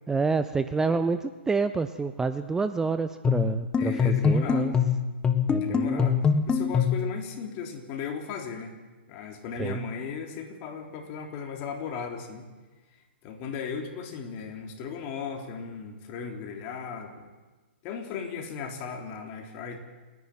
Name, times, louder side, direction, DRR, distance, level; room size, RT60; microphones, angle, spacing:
voice 1, 0.1-4.7 5.5-6.2 9.6-9.8, right 4 dB, 10° right, 11 dB, 0.6 m, -28 dB
sound 1, 3.2-7.1, left 6 dB, 15° left, 1.5 m, -24 dB
voice 2, 3.8-4.8 5.6-8.8 9.1-12.5 13.2-17.3 17.8-19.8, left 6 dB, 35° left, 3 dB, 3.6 m, -36 dB
28.5 x 11.0 x 9.4 m, 1.3 s
hypercardioid pair, 125°, 6 cm